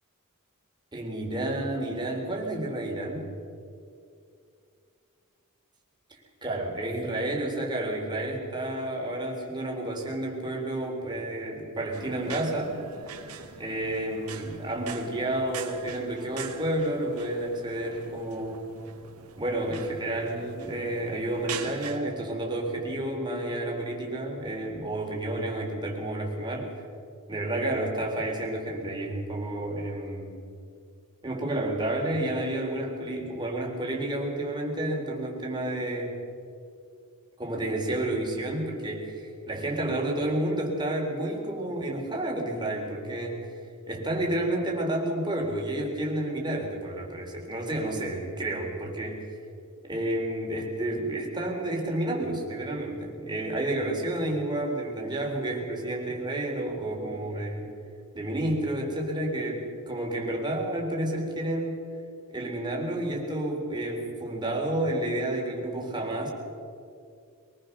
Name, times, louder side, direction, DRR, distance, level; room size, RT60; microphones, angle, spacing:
voice 1, 0.9-3.3 6.4-12.8 13.1-13.2 13.6-18.6 19.4-26.7 27.3-30.3 31.2-36.2 37.4-43.5 43.9-49.3 49.8-57.7 58.1-61.8 62.3-66.3, right 1 dB, 20° right, 0 dB, 3.9 m, -30 dB
sound 1, 11.9-22.0, right 6 dB, 85° right, 2.2 m, -42 dB
23.0 x 20.0 x 6.7 m, 2.4 s
head